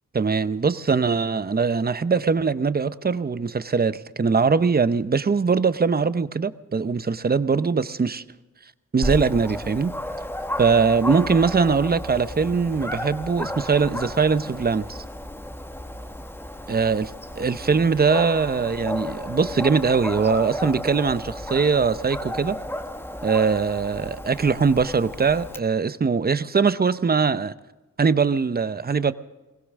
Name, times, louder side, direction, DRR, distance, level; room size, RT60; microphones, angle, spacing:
voice 1, 0.1-8.2 8.9-9.9 10.6-15.0 16.7-17.1 17.4-22.6 23.2-27.5 28.0-29.1, right 5 dB, 30° right, 14 dB, 0.7 m, -21 dB
Dog, 9.0-25.6, left 1 dB, 5° left, 1.3 m, -33 dB
21.5 x 17.0 x 3.7 m, 1.1 s
cardioid pair, 60°, 33 cm